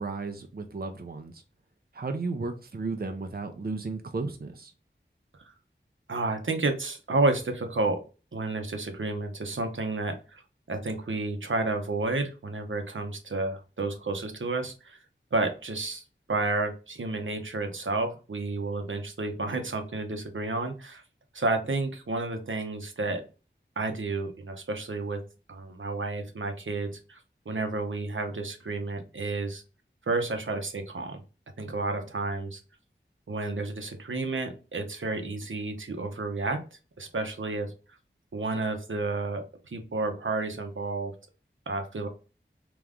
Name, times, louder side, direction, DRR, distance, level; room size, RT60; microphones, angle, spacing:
voice 1, 0.0-1.4 1.9-4.7, right 3 dB, 50° right, 6 dB, 0.5 m, -34 dB
voice 2, 6.1-8.0 8.3-10.4 10.7-15.0 15.3-21.0 21.3-23.2 23.8-25.2 25.5-27.2 27.5-29.6 30.1-31.2 31.6-32.6 33.3-37.7 38.3-41.1 41.7-42.1, right 3 dB, 85° right, 5 dB, 0.8 m, -31 dB
3.5 x 3.0 x 3.5 m, 0.34 s
wide cardioid pair, 55°, 20 cm